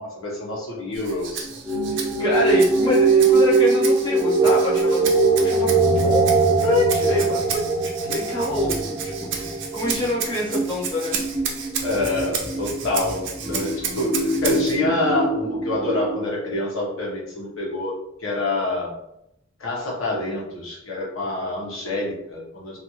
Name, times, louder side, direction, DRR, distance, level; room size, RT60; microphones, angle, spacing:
voice 1, 0.0-1.5 11.8-17.9 18.2-18.9 19.6-22.8, left 2 dB, 80° left, -4 dB, 1.0 m, -27 dB
Rattle (instrument), 0.9-14.8, right 6 dB, 60° right, 0.5 m, -33 dB
sound 1, 1.7-16.2, right 3 dB, 5° right, 0.4 m, -22 dB
voice 2, 1.9-5.1 5.3-5.7 6.0-6.2 6.6-7.7 8.1-11.2, left 1 dB, 25° left, -7 dB, 1.0 m, -26 dB
2.5 x 2.4 x 2.9 m, 0.82 s
head